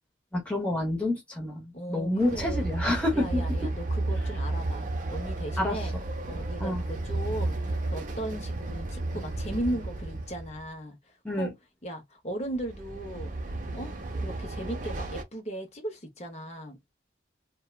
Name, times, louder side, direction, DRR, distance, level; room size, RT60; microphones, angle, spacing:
voice 1, 0.3-3.4 5.6-5.8 6.6-6.8 11.2-11.5, left 1 dB, 5° left, 0.8 m, -28 dB
voice 2, 1.7-2.7 3.1-5.9 6.3-11.0 11.4-11.5 11.8-13.3 13.7-13.9 14.2-16.8, right 1 dB, 35° left, 0.7 m, -37 dB
Train, 2.2-10.7 12.5-15.2, right 2 dB, 45° right, 0.5 m, -32 dB
2.7 x 2.1 x 2.3 m
head